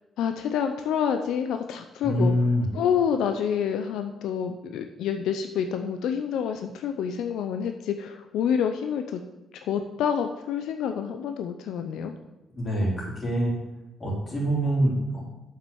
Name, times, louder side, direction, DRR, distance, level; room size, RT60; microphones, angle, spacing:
voice 1, 0.2-2.3 2.7-9.2 9.6-12.1, left 8 dB, 85° left, 6 dB, 0.6 m, -28 dB
voice 2, 2.0-2.7 12.5-13.5 14.0-15.2, equal, 30° left, -3 dB, 3.9 m, -25 dB
7.5 x 6.0 x 7.1 m, 0.98 s
cardioid pair, 90°, 0 cm